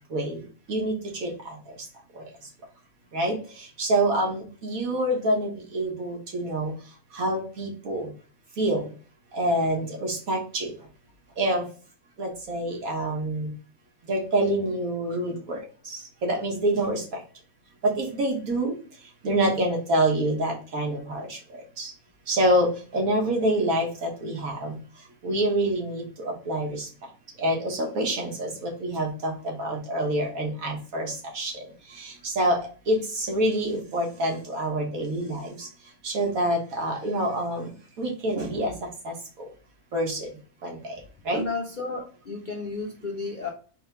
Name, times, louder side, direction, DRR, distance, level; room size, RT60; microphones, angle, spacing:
voice 1, 3.8-5.5 5.7-6.7 7.2-8.1 8.6-8.8 9.4-10.7 11.4-11.6 12.2-13.5 14.1-15.6 16.2-17.0 17.8-18.7 19.2-21.2 22.3-22.7 22.9-24.7 25.2-26.0 26.5-26.7 27.4-28.5 28.8-29.3 29.6-31.5 32.4-32.6 32.9-33.0 33.3-35.4 36.1-37.6 38.0-38.7 39.9-40.2 41.3-41.4, right 1 dB, 70° right, 0 dB, 1.8 m, -26 dB
voice 2, 41.3-43.5, left 3 dB, 55° left, 1 dB, 0.5 m, -32 dB
4.2 x 3.4 x 3.4 m, 0.39 s
omnidirectional pair, 1.5 m